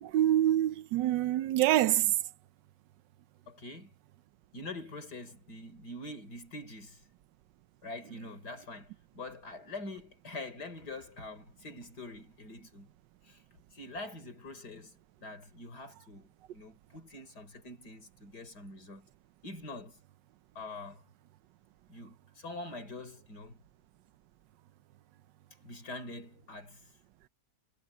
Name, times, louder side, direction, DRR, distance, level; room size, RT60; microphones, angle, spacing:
voice 1, 0.0-2.1, right 13 dB, 85° right, 1.3 m, -26 dB
voice 2, 3.5-3.9 4.5-7.0 7.8-12.9 13.2-13.4 13.7-19.1 19.4-20.0 20.5-21.0 21.9-23.6 25.6-26.8, left 2 dB, 65° left, 4.7 m, -45 dB
omnidirectional pair, 1.9 m